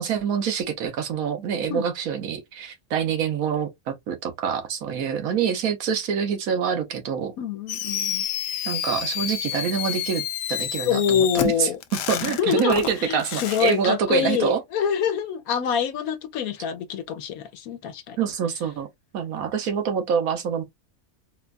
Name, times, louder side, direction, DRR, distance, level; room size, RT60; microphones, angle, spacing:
voice 1, 0.0-7.3 8.6-10.2 10.5-11.7 12.1-14.6 18.2-18.9 19.1-20.6, right 7 dB, 80° right, 1.3 m, -26 dB
voice 2, 7.4-8.3 10.8-11.8 12.1-18.2, left 8 dB, 90° left, 1.1 m, -25 dB
Fireworks, 7.7-13.7, left 10 dB, 70° left, 0.9 m, -30 dB
4.3 x 2.3 x 2.4 m
omnidirectional pair, 1.5 m